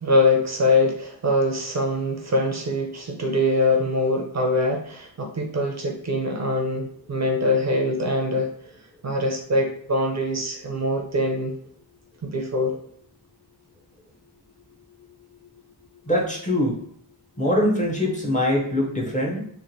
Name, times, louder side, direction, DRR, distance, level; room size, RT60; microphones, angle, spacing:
voice 1, 0.0-8.5 9.0-11.5 12.2-12.7, left 1 dB, 40° right, 1 dB, 0.5 m, -23 dB
voice 2, 16.1-16.8 17.4-19.4, left 1 dB, 20° left, -3 dB, 0.6 m, -23 dB
3.0 x 2.5 x 2.6 m, 0.66 s
wide cardioid pair, 155°, 41 cm